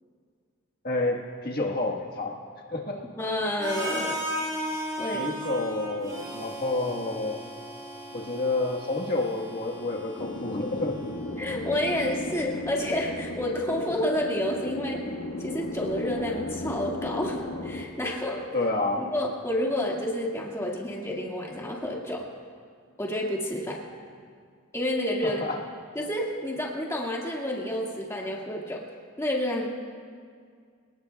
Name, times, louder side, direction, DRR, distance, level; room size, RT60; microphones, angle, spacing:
voice 1, 0.8-2.4 2.7-3.0 5.1-7.4 8.1-11.0 18.5-19.1 25.2-25.6, left 2 dB, 50° left, 0 dB, 1.5 m, -29 dB
voice 2, 3.2-4.2 5.0-5.3 11.4-15.1 15.4-18.5 19.0-22.3 23.0-23.8 24.7-25.4 26.0-28.8 29.2-29.7, left 1 dB, 15° left, -2 dB, 1.9 m, -29 dB
Harmonica, 3.6-11.5, equal, 15° right, 4.9 m, -36 dB
sound 1, 10.2-17.8, left 1 dB, 80° left, 1.6 m, -35 dB
27.5 x 19.0 x 2.3 m, 2.1 s
head